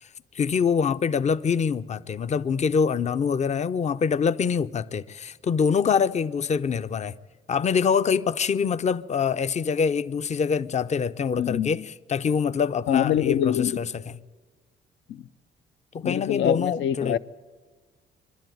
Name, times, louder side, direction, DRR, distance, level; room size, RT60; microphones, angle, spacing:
voice 1, 0.3-7.1 7.5-13.9 15.9-17.2, left 6 dB, 35° left, 0.6 m, -25 dB
voice 2, 11.4-11.8 12.9-13.8 15.1-15.2 16.0-17.2, left 10 dB, 75° left, 0.6 m, -25 dB
23.5 x 12.0 x 9.3 m
cardioid pair, 90°, 20 cm